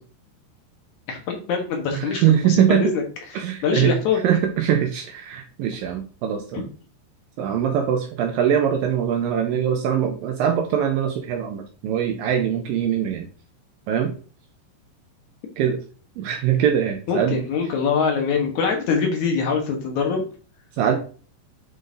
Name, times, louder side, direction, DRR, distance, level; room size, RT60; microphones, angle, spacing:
voice 1, 1.1-4.2 6.5-6.6 17.1-20.3, left 5 dB, 65° left, 2 dB, 1.9 m, -24 dB
voice 2, 1.9-2.8 3.4-3.9 4.2-6.6 7.4-13.3 13.9-14.1 15.6-15.8 16.2-17.4 20.8-21.0, right 9 dB, 85° right, 4 dB, 2.1 m, -22 dB
9.5 x 3.9 x 3.8 m, 0.39 s
omnidirectional pair, 4.9 m